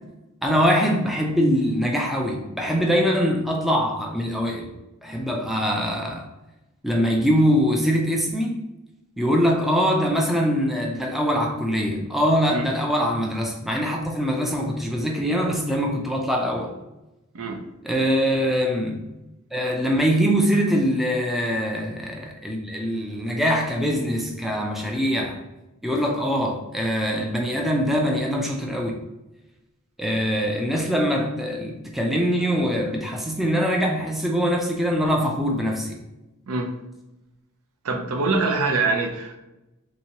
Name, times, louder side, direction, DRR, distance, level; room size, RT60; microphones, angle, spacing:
voice 1, 0.4-4.7 5.0-6.3 6.8-8.6 9.2-16.7 17.8-19.0 19.5-25.4 25.8-29.0 30.0-36.0, equal, ahead, 0 dB, 0.4 m, -23 dB
voice 2, 37.8-39.4, right 3 dB, 70° right, 3 dB, 0.6 m, -24 dB
3.4 x 3.0 x 2.8 m, 0.97 s
head